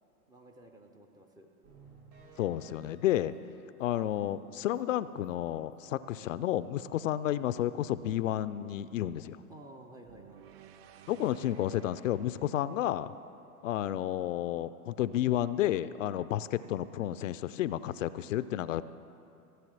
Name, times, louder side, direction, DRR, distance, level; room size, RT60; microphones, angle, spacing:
voice 1, 0.3-1.5 5.8-6.1 9.5-10.5 16.1-16.3, right 1 dB, 10° right, 3 dB, 0.5 m, -53 dB
sound 1, 1.6-4.4 4.8-4.9 5.2-5.3 5.7-5.8, right 4 dB, 75° right, 3.4 m, -58 dB
voice 2, 2.4-3.3 3.8-9.4 11.1-13.1 13.6-18.8, left 12 dB, 60° left, 14 dB, 0.5 m, -31 dB
sound 2, 10.1-14.3, right 9 dB, 45° right, 0.7 m, -56 dB
16.0 x 7.6 x 6.2 m, 2.6 s
hypercardioid pair, 115°, 44 cm